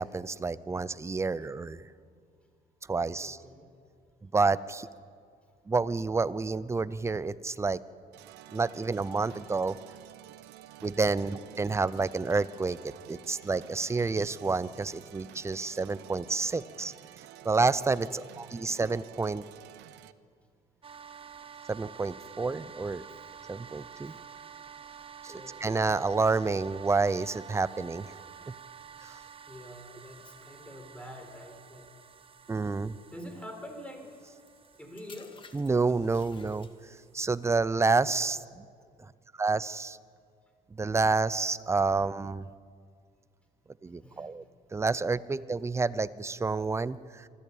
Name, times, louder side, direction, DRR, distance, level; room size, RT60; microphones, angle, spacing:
voice 1, 0.0-1.8 2.9-3.4 4.2-4.9 5.7-7.8 8.5-9.8 10.8-16.9 17.4-19.4 21.7-23.0 23.5-24.1 25.2-25.3 25.6-28.1 29.0-29.1 32.5-33.0 35.5-36.7 37.1-38.6 39.4-40.0 40.7-42.5 43.8-44.4 44.7-47.3, right 4 dB, 15° right, 17 dB, 0.7 m, -29 dB
voice 2, 3.2-3.7 11.1-11.3 18.1-18.3 20.9-21.0 23.1-23.2 24.0-24.3 25.3-25.6 29.5-31.9 33.1-34.1 34.8-35.4 43.9-44.4, left 1 dB, 5° left, 4 dB, 4.4 m, -46 dB
sound 1, 8.1-20.1, right 13 dB, 90° right, 0.9 m, -51 dB
sound 2, 20.8-37.5, right 8 dB, 35° right, 1.0 m, -50 dB
sound 3, 34.1-37.1 37.9-38.2, left 4 dB, 30° left, 2.0 m, -55 dB
25.0 x 14.0 x 8.8 m, 2.1 s
cardioid pair, 110°, 17 cm